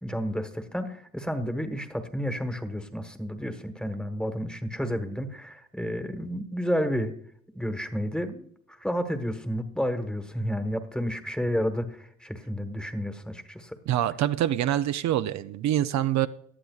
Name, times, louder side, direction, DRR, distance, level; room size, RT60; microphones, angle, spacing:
voice 1, 0.0-7.2 7.5-13.7, equal, 5° left, 8 dB, 1.2 m, -31 dB
voice 2, 13.9-16.3, right 12 dB, 65° right, 11 dB, 0.5 m, -25 dB
17.5 x 11.5 x 2.4 m, 0.66 s
cardioid pair, 90°, 30 cm